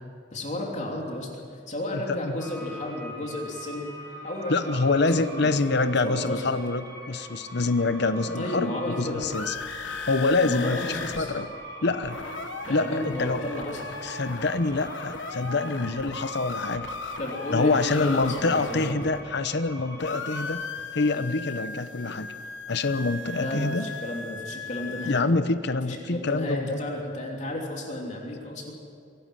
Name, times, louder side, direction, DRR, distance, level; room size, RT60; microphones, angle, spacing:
voice 1, 0.3-3.9 4.2-6.5 8.3-9.3 10.4-11.3 12.6-13.9 17.2-18.9 23.3-25.3 25.8-28.7, left 1 dB, 40° left, -1 dB, 3.2 m, -33 dB
sound 1, 2.4-20.5, right 1 dB, 20° right, 6.3 m, -43 dB
voice 2, 4.5-8.7 9.0-9.5 10.1-10.8 11.2-11.5 11.8-12.2 12.7-13.4 14.0-16.9 17.5-22.3 22.7-23.9 25.1-26.8, left 3 dB, 65° left, 11 dB, 0.9 m, -26 dB
sound 2, 9.2-11.2 11.5-11.6 11.8-19.7 20.0-25.2, left 4 dB, 85° left, 1.2 m, -37 dB
24.0 x 11.5 x 10.0 m, 2.3 s
head